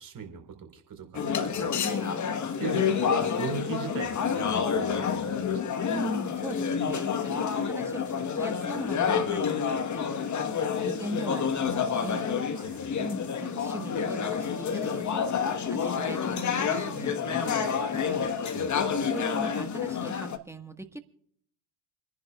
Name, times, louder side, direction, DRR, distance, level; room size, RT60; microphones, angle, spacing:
voice 1, 0.0-1.7 2.6-5.7 12.6-13.2 18.5-19.0, right 8 dB, 45° right, 5 dB, 4.3 m, -40 dB
sound 1, 1.1-20.4, left 6 dB, 40° left, 1.4 m, -29 dB
voice 2, 1.8-2.3 5.9-10.5 10.8-12.3 13.0-18.3 19.1-21.0, right 1 dB, 5° right, 7 dB, 1.5 m, -40 dB
29.0 x 11.0 x 2.4 m, 0.67 s
hypercardioid pair, 55°, 47 cm